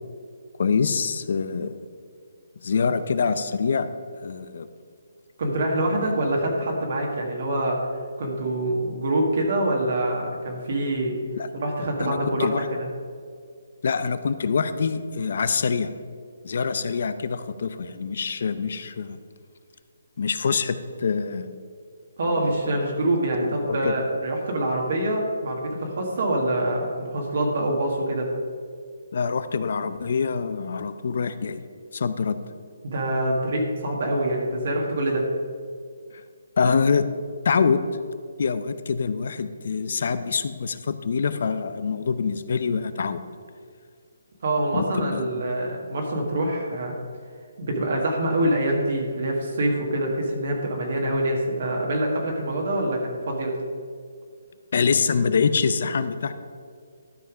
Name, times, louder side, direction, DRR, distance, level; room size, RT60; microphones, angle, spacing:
voice 1, 0.6-1.8 2.6-3.9 4.2-4.7 6.0-6.2 11.4-11.5 12.0-12.7 13.8-15.9 16.4-19.2 20.2-21.5 22.4-22.8 23.4-23.9 29.1-31.6 31.9-32.4 36.1-36.2 36.6-37.1 37.4-37.8 38.4-43.2 44.7-45.2 54.7-56.3, left 5 dB, 55° left, 12 dB, 0.6 m, -25 dB
voice 2, 5.4-7.8 8.2-11.2 11.5-12.5 12.8-12.9 22.2-28.3 32.8-35.3 44.4-46.9 47.6-53.5, right 1 dB, 55° right, 0 dB, 1.6 m, -25 dB
12.0 x 5.6 x 4.9 m, 2.1 s
hypercardioid pair, 165°, 0 cm